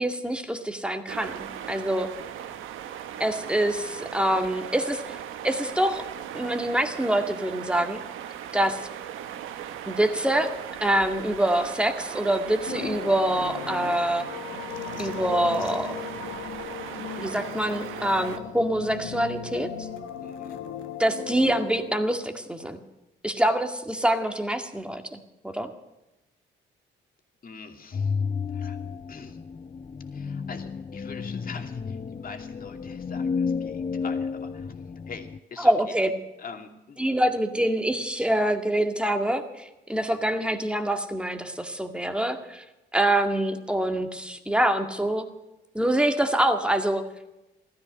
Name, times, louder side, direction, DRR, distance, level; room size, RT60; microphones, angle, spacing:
voice 1, 0.0-2.1 3.2-5.2 5.4-6.0 6.3-8.0 8.5-8.8 9.9-10.5 10.8-14.3 15.0-15.9 17.2-19.9 21.0-22.8 23.2-25.7 35.6-36.1 37.0-42.6 42.9-45.3 45.7-47.0, right 1 dB, 5° right, 6 dB, 2.0 m, -25 dB
sound 1, 1.1-18.4, right 10 dB, 85° right, 1.2 m, -38 dB
sound 2, 12.7-22.0, left 9 dB, 80° left, 1.3 m, -37 dB
voice 2, 20.2-20.6 27.4-28.1 28.5-28.8 29.1-29.4 30.1-34.7 35.1-36.0 36.4-37.0 40.0-40.4, left 5 dB, 45° left, 4 dB, 2.6 m, -44 dB
sound 3, 27.9-35.4, left 5 dB, 30° left, 0.6 m, -32 dB
15.5 x 13.5 x 6.6 m, 0.97 s
cardioid pair, 90°, 20 cm